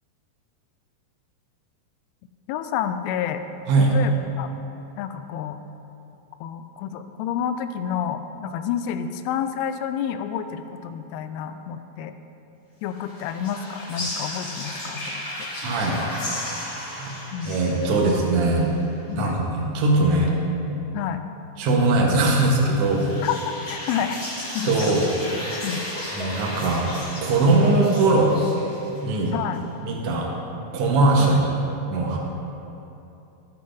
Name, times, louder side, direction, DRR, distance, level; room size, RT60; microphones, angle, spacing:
voice 1, 2.5-3.4 3.9-4.5 5.0-5.6 6.4-12.1 12.8-15.2 17.3-17.6 18.0-18.1 19.1-19.4 20.9-21.2 23.2-23.4 23.7-24.2 24.5-24.9 25.6-25.9 29.3-29.6 31.3-31.4, left 9 dB, 85° left, 9 dB, 2.5 m, -29 dB
sound 1, 12.9-18.9 22.3-29.3, left 1 dB, 30° left, 2.0 m, -35 dB
voice 2, 15.6-16.0 17.0-17.1 17.4-18.7 19.2-20.3 21.6-23.1 24.6-25.1 26.1-26.9 27.2-28.3 29.0-29.3 29.8-30.3 30.7-31.5 31.9-32.2, right 2 dB, 70° right, -2 dB, 1.4 m, -20 dB
16.0 x 7.5 x 2.6 m, 2.9 s
omnidirectional pair, 4.4 m